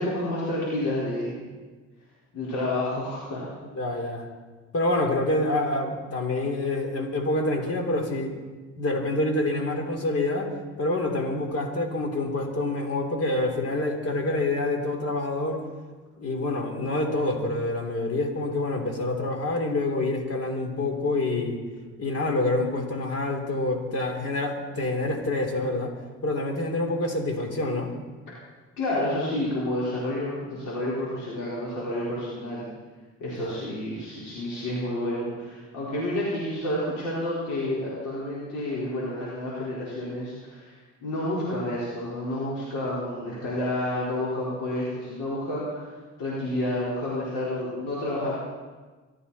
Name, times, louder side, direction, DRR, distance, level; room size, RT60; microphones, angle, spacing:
voice 1, 0.0-1.4 2.3-3.5 28.8-32.6 33.2-40.7 41.0-45.9 46.2-48.3, left 1 dB, 90° left, -7 dB, 4.6 m, -29 dB
voice 2, 3.7-4.3 4.7-8.4 8.8-10.5 10.8-15.6 16.2-21.6 22.0-25.9 26.2-27.9 33.4-33.5, left 2 dB, 50° left, 3 dB, 3.3 m, -27 dB
24.0 x 14.0 x 4.2 m, 1.3 s
cardioid pair, 90°, 30 cm